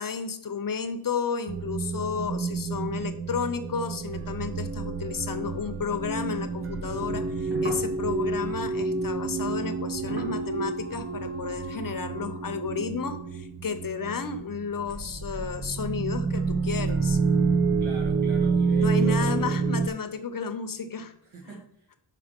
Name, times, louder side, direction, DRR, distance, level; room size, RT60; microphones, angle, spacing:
voice 1, 0.0-17.2 18.8-21.1 21.5-21.6, left 6 dB, 45° left, 9 dB, 0.6 m, -32 dB
sound 1, 1.5-19.9, right 4 dB, 30° right, 0.4 m, -28 dB
sound 2, 5.4-6.5 7.1-11.7, right 3 dB, 60° right, 1.7 m, -43 dB
voice 2, 17.8-19.6 21.2-22.0, right 2 dB, 80° right, 0 dB, 2.0 m, -43 dB
5.8 x 4.8 x 5.1 m, 0.67 s
wide cardioid pair, 165°, 48 cm